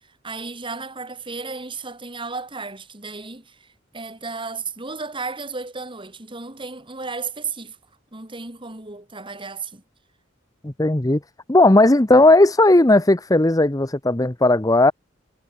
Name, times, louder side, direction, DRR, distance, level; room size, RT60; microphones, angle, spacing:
voice 1, 0.0-3.7 3.9-7.8 8.1-9.8, right 4 dB, 25° right, 3.2 m, -34 dB
voice 2, 10.6-11.2 11.5-14.9, left 2 dB, 20° left, 0.9 m, -15 dB
head